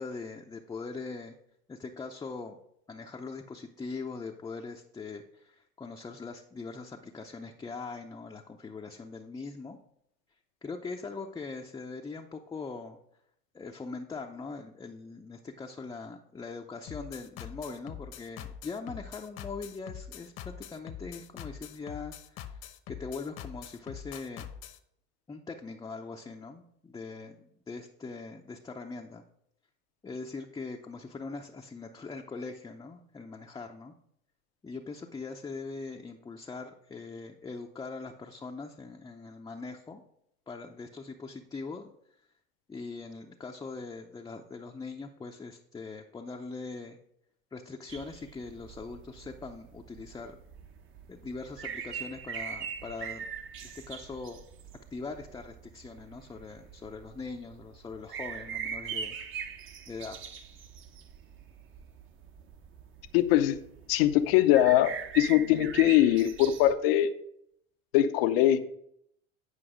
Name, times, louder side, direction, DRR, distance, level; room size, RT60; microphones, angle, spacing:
voice 1, 0.0-1.4 1.7-2.6 2.9-9.8 10.6-13.0 13.5-22.6 22.9-24.5 25.3-29.2 30.0-33.9 34.6-40.0 40.5-41.9 42.7-47.0 47.5-50.4 51.1-53.3 53.6-54.4 54.9-59.2 59.9-60.2, left 4 dB, 15° left, 1 dB, 0.6 m, -41 dB
sound 1, 16.9-24.8, left 10 dB, 55° left, 1.0 m, -44 dB
sound 2, 47.9-66.7, right 7 dB, 45° right, 1.0 m, -42 dB
voice 2, 63.1-63.6 63.9-67.1 67.9-68.6, left 13 dB, 80° left, 9 dB, 0.8 m, -22 dB
9.8 x 5.2 x 5.0 m, 0.72 s
supercardioid pair, 115°, 29 cm